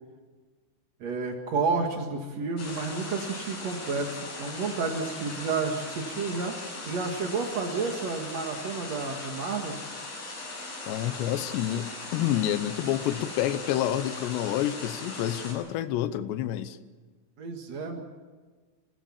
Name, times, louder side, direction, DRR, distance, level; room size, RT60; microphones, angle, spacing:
voice 1, 1.0-6.5 6.8-9.7 17.4-18.0, right 4 dB, 80° right, 3 dB, 1.5 m, -31 dB
sound 1, 2.6-15.5, left 2 dB, 40° left, 7.3 m, -39 dB
voice 2, 10.9-16.8, left 12 dB, 80° left, 11 dB, 2.5 m, -28 dB
25.5 x 16.5 x 7.2 m, 1.4 s
omnidirectional pair, 6.0 m